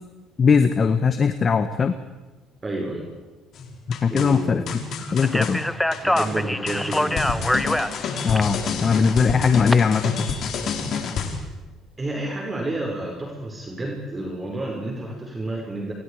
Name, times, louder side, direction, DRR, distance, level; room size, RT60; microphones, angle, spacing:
voice 1, 0.4-1.9 3.9-5.6 8.2-10.3, left 5 dB, 40° left, 9 dB, 1.5 m, -20 dB
voice 2, 2.6-3.1 4.1-4.8 6.0-7.2 12.0-15.9, right 2 dB, 25° right, 0 dB, 5.8 m, -30 dB
sound 1, 3.5-11.4, left 5 dB, 60° left, 4.5 m, -29 dB
Speech, 5.2-9.7, left 1 dB, 5° left, 1.3 m, -25 dB
29.5 x 24.0 x 5.1 m, 1.2 s
supercardioid pair, 75°, 0 cm